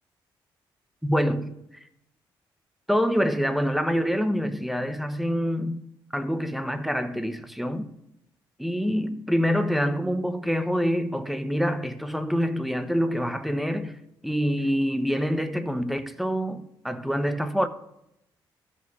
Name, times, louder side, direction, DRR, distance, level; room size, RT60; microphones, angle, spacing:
voice 1, 1.0-1.6 2.9-5.8 6.1-7.9 8.6-14.0 14.2-17.7, equal, ahead, 0.9 m, -26 dB
14.0 x 5.5 x 3.9 m
supercardioid pair, 55°, 10 cm